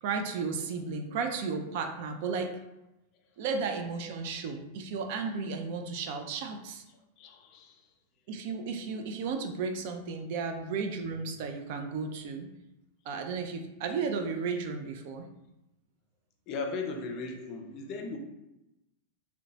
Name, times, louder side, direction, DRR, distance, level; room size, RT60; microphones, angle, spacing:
voice 1, 0.0-2.5 3.4-6.8 8.3-12.5 13.1-15.2, right 5 dB, 50° right, 5 dB, 0.3 m, -34 dB
voice 2, 7.2-7.8 16.5-18.2, left 4 dB, 40° left, 3 dB, 0.4 m, -37 dB
2.8 x 2.1 x 2.6 m, 0.93 s
figure-of-eight pair, 90°, 0 cm